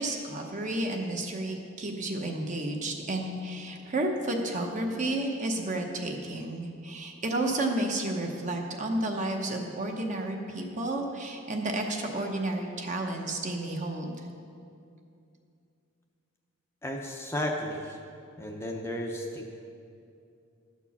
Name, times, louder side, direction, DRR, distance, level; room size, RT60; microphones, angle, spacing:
voice 1, 0.0-14.2, right 1 dB, 35° right, 2 dB, 0.9 m, -31 dB
voice 2, 16.8-18.0 18.4-19.6, left 1 dB, 10° left, 1 dB, 0.6 m, -33 dB
12.0 x 4.5 x 7.1 m, 2.5 s
head